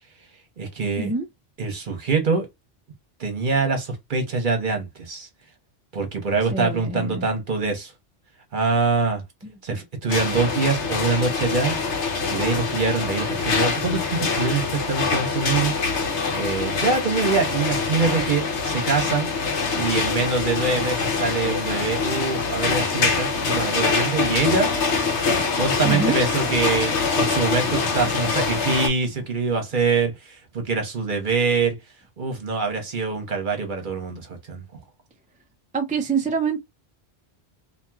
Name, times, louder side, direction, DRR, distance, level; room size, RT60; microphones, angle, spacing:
voice 1, 0.6-1.1 1.6-2.5 3.2-5.3 5.9-7.9 8.5-9.2 9.6-11.7 12.3-15.8 16.3-19.3 19.8-24.7 25.6-31.8 32.2-34.6, right 4 dB, 50° right, 1.1 m, -24 dB
voice 2, 6.5-7.3 9.4-9.5 25.8-26.2 35.7-36.6, right 4 dB, 15° right, 0.3 m, -25 dB
sound 1, 10.1-28.9, left 4 dB, 85° left, 1.1 m, -24 dB
2.9 x 2.8 x 2.3 m
omnidirectional pair, 1.1 m